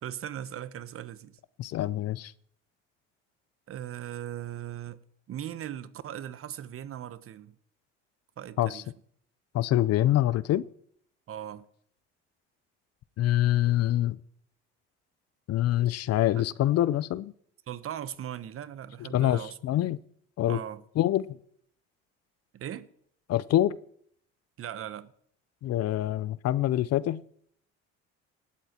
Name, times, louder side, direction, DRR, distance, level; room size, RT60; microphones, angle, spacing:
voice 1, 0.0-1.4 3.7-5.0 5.3-7.5 8.4-8.9 11.3-11.6 16.4-16.5 17.7-19.8 20.5-20.8 22.5-22.9 24.6-25.1, right 10 dB, 50° right, 1.1 m, -39 dB
voice 2, 1.6-2.3 8.6-8.8 9.5-10.6 13.2-14.2 15.5-17.3 19.1-20.0 20.4-20.6 21.0-21.3 23.3-23.8 25.6-27.2, left 13 dB, 55° left, 0.7 m, -25 dB
18.5 x 13.0 x 4.5 m
cardioid pair, 100°, 30 cm